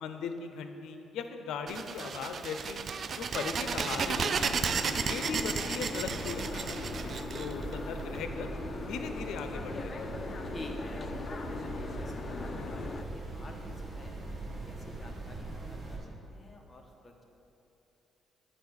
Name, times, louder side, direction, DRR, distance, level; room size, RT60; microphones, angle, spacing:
voice 1, 0.0-2.8 3.1-4.7 5.0-8.5 8.9-10.1, left 5 dB, 85° left, 7 dB, 0.6 m, -39 dB
sound 1, 1.7-8.2, right 5 dB, 50° right, 0.4 m, -33 dB
Boat Water vehicle, 4.0-13.0, left 4 dB, 40° left, 0.6 m, -41 dB
sound 2, 6.0-16.0, right 2 dB, 25° right, 1.6 m, -41 dB
voice 2, 10.5-14.1 14.5-17.2, left 2 dB, 25° left, 2 dB, 1.1 m, -49 dB
8.9 x 5.0 x 6.4 m, 2.9 s
cardioid pair, 90°, 0 cm